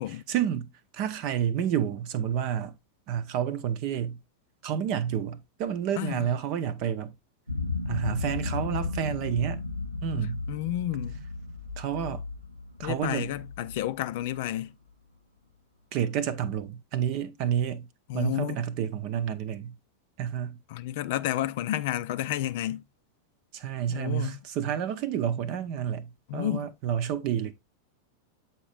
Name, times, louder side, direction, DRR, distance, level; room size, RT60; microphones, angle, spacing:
voice 1, 0.1-2.7 3.1-4.2 4.6-7.1 7.9-9.6 10.0-10.4 11.8-12.2 12.8-13.3 15.9-17.9 18.1-19.8 20.2-20.6 23.5-27.5, right 9 dB, 45° right, 0.7 m, -30 dB
voice 2, 6.0-6.3 10.5-11.3 12.8-14.7 18.1-18.6 20.7-22.8 23.9-24.4 26.3-26.7, left 13 dB, 50° left, 0.4 m, -31 dB
sound 1, 7.5-14.6, left 3 dB, 90° right, 0.9 m, -34 dB
8.0 x 4.5 x 3.2 m
figure-of-eight pair, 90°, 0 cm